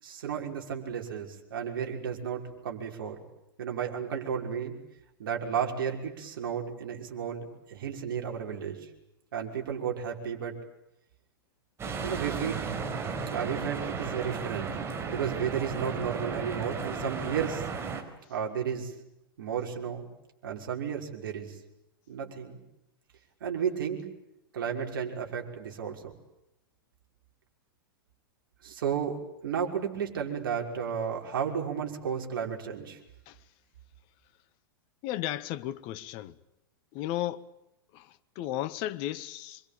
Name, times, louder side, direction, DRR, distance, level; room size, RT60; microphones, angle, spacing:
voice 1, 0.0-3.2 3.6-4.7 5.2-8.9 9.3-10.6 12.0-12.6 13.3-14.8 15.1-17.7 18.3-18.9 19.4-20.1 20.4-21.6 22.1-22.6 23.4-24.0 24.5-26.1 28.6-33.0, right 7 dB, 65° right, 6.0 m, -33 dB
sound 1, 11.8-18.0, right 5 dB, 20° right, 4.9 m, -34 dB
voice 2, 35.0-36.4 36.9-37.4 37.9-39.6, left 13 dB, 40° left, 1.4 m, -34 dB
27.5 x 24.5 x 8.9 m
figure-of-eight pair, 100°, 12 cm